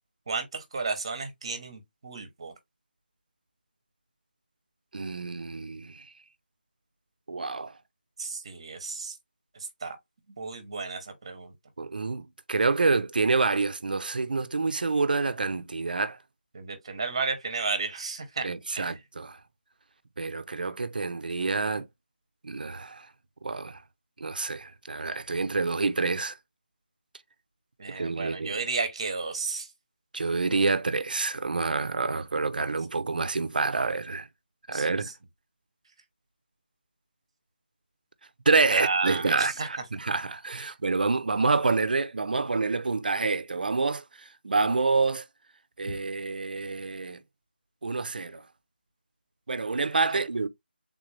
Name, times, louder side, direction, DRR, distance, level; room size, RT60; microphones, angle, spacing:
voice 1, 0.3-2.5 8.2-9.2 9.5-10.0 10.4-11.5 16.5-18.5 18.7-19.0 27.8-29.7 34.7-35.1 38.7-39.9 40.6-40.7 45.9-46.0 50.1-50.2, right 4 dB, 30° right, 0.8 m, -33 dB
voice 2, 4.9-6.0 7.3-7.7 11.8-16.2 18.4-19.4 20.2-21.9 22.4-23.1 23.4-23.8 24.2-26.3 27.9-28.6 30.1-34.3 34.7-35.1 38.5-45.2 45.8-47.2 47.8-48.4 49.5-50.5, right 3 dB, 60° right, 0.5 m, -27 dB
3.6 x 2.5 x 3.2 m
figure-of-eight pair, 175°, 6 cm